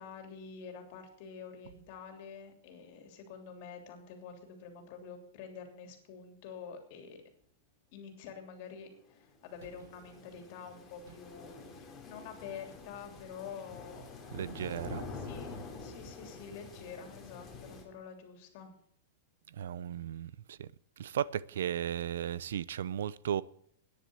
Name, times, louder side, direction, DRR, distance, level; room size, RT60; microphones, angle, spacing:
voice 1, 0.0-7.2 7.9-14.1 15.1-18.7, left 6 dB, 50° left, 3.2 m, -48 dB
sound 1, 8.9-17.8, left 4 dB, 15° left, 2.7 m, -47 dB
voice 2, 14.3-15.0 19.5-20.7 21.0-23.4, right 9 dB, 90° right, 0.5 m, -35 dB
10.5 x 10.0 x 7.9 m
supercardioid pair, 155°, 0 cm